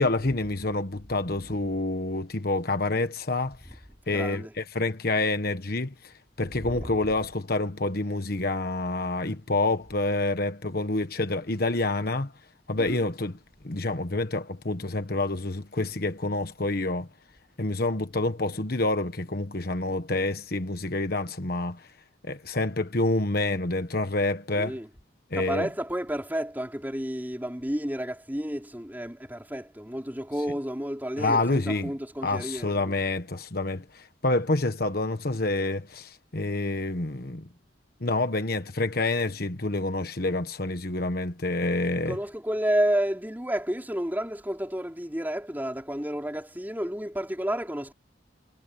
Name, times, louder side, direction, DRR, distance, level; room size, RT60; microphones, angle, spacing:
voice 1, 0.0-3.6 4.1-12.3 12.7-13.3 13.6-17.1 17.6-21.9 22.2-24.8 25.3-25.7 31.2-31.9 32.2-37.5 38.0-42.2, left 2 dB, 50° left, 1.4 m, -28 dB
voice 2, 4.1-4.5 6.6-6.9 12.8-13.0 24.5-24.9 25.3-33.0 42.1-47.9, equal, 10° right, 4.1 m, -31 dB
head